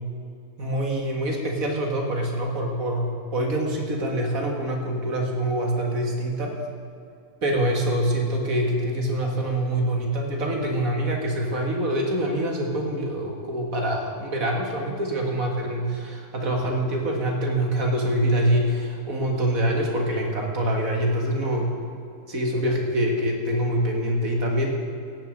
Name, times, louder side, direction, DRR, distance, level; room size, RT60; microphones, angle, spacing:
voice 1, 0.6-6.6 7.4-21.7 22.3-24.7, right 1 dB, 70° right, 1 dB, 2.3 m, -25 dB
17.0 x 7.4 x 6.4 m, 2.5 s
omnidirectional pair, 1.5 m